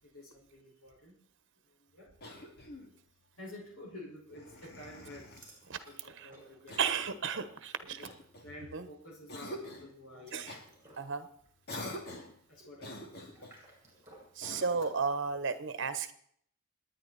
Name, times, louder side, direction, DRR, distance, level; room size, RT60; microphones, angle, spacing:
voice 1, 0.0-1.1 1.9-2.1 3.4-6.8 7.1-7.2 7.8-8.1 8.4-10.5 12.5-13.0, left 1 dB, 80° left, -1 dB, 5.2 m, -50 dB
Cough, 2.2-3.0 4.3-5.5 6.7-7.2 8.0-8.8 9.3-9.9 10.5-10.7 11.7-12.4 12.8-13.6 14.4-15.0, left 1 dB, 50° left, 2.6 m, -45 dB
sound 1, 5.3-8.2 8.5-8.8 10.0-14.3, right 1 dB, 15° right, 7.3 m, -59 dB
voice 2, 6.8-8.0 8.7-8.9 10.3-10.5 11.0-11.3 14.4-16.1, right 5 dB, 60° right, 11 dB, 1.2 m, -33 dB
29.5 x 9.9 x 4.2 m, 0.64 s
head